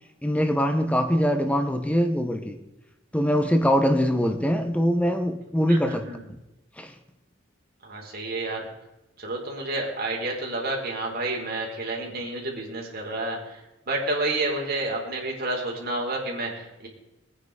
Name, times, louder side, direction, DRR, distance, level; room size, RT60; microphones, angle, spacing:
voice 1, 0.2-2.6 3.1-6.4 6.8-6.9, equal, 5° left, 7 dB, 1.1 m, -23 dB
voice 2, 5.7-6.2 7.8-8.7 9.2-13.6 13.9-16.9, right 2 dB, 50° right, -1 dB, 4.1 m, -30 dB
21.5 x 9.6 x 5.0 m, 0.96 s
head